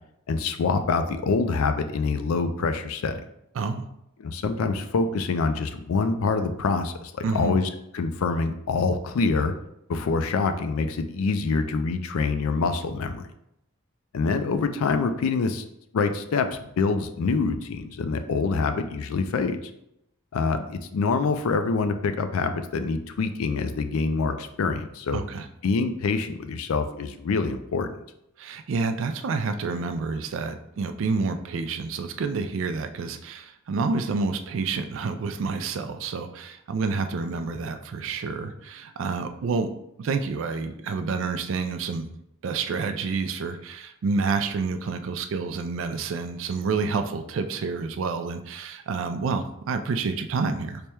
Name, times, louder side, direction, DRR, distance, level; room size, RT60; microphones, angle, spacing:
voice 1, 0.3-3.2 4.2-9.5 9.9-13.3 14.1-15.6 15.9-19.6 20.3-25.2 25.6-27.9, left 4 dB, 85° left, 9 dB, 0.4 m, -25 dB
voice 2, 3.6-3.9 7.2-7.6 25.1-25.5 28.4-39.7 40.0-42.1 42.4-50.8, right 4 dB, 65° right, 8 dB, 0.3 m, -28 dB
3.3 x 2.1 x 4.3 m, 0.80 s
head